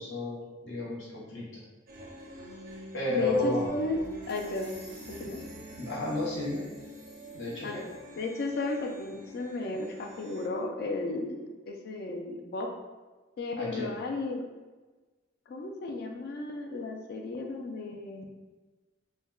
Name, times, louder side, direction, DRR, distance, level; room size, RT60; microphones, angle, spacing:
voice 1, 0.0-1.6 2.9-3.7 5.8-6.7 7.3-7.8 13.6-13.9, left 2 dB, 75° left, -6 dB, 0.9 m, -32 dB
sound 1, 1.9-10.5, equal, 50° right, 0.4 m, -46 dB
voice 2, 3.1-4.0 4.3-4.8 5.1-5.4 7.6-7.8 8.2-12.7 13.4-14.4 15.5-18.3, left 2 dB, 55° left, 3 dB, 0.4 m, -34 dB
sound 2, 4.0-8.0, equal, 15° left, 1.2 m, -55 dB
3.2 x 2.1 x 2.3 m, 1.3 s
head